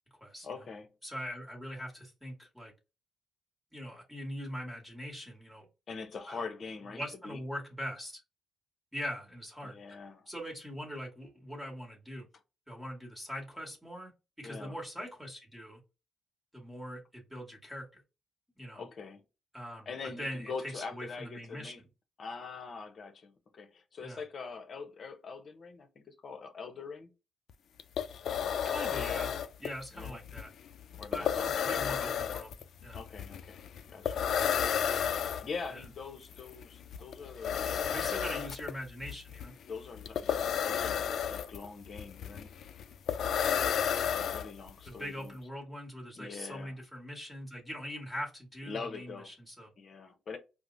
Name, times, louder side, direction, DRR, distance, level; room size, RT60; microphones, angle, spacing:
voice 1, 0.4-0.9 5.9-7.4 9.6-10.3 14.4-14.7 18.8-19.2 19.9-21.8 22.2-27.1 29.9-30.2 31.0-32.1 32.9-33.6 33.9-34.2 35.4-37.8 39.7-42.5 44.1-45.3 46.1-46.8 48.7-49.3 49.8-50.4, left 4 dB, 50° left, 0.7 m, -43 dB
voice 2, 1.0-2.7 3.7-5.7 6.3-6.4 6.9-8.2 8.9-9.8 10.3-12.3 12.7-14.1 14.4-15.8 16.5-18.0 18.6-18.8 19.5-19.9 20.2-21.7 24.0-24.2 28.6-29.3 29.6-30.5 31.1-33.0 35.7-35.8 37.7-39.5 44.8-49.7, equal, 5° right, 1.4 m, -42 dB
sound 1, 27.5-27.6 27.8-44.9, left 8 dB, 65° left, 0.3 m, -33 dB
4.6 x 2.0 x 2.6 m
cardioid pair, 90°, 0 cm